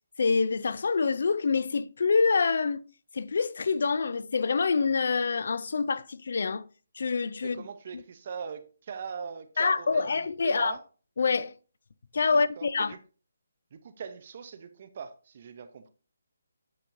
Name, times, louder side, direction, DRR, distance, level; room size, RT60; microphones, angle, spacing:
voice 1, 0.2-2.8 3.1-6.6 6.9-7.6 7.9-8.0 9.6-10.7 11.2-11.5 12.1-12.9, left 4 dB, 60° left, 0.4 m, -26 dB
voice 2, 7.4-10.8 12.3-13.0 13.7-15.9, right 6 dB, 40° right, 0.6 m, -41 dB
8.8 x 4.5 x 2.6 m
hypercardioid pair, 165°, 0 cm